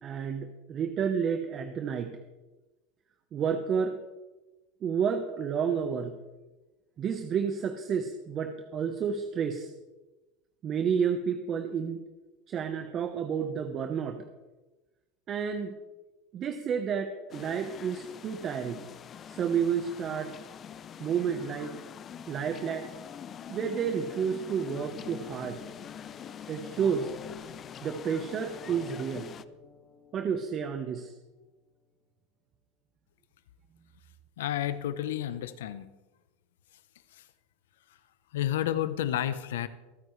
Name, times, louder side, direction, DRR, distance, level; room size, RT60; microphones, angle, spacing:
voice 1, 0.0-2.2 3.3-4.0 4.8-6.2 7.0-9.7 10.6-12.0 12.5-14.2 15.3-15.7 16.3-18.8 19.3-20.4 21.0-21.7 22.3-22.9 23.5-25.6 26.5-27.1 27.8-29.3 30.1-31.1, right 7 dB, 40° right, 6 dB, 1.0 m, -30 dB
sound 1, 17.3-29.4, left 8 dB, 35° left, 0.6 m, -44 dB
sound 2, 24.4-31.3 31.6-31.7, left 6 dB, 55° left, 1.7 m, -51 dB
voice 2, 34.4-35.9 37.1-37.2 38.3-39.7, left 11 dB, 85° left, 14 dB, 0.8 m, -31 dB
25.0 x 9.3 x 3.3 m, 1.2 s
supercardioid pair, 105°, 0 cm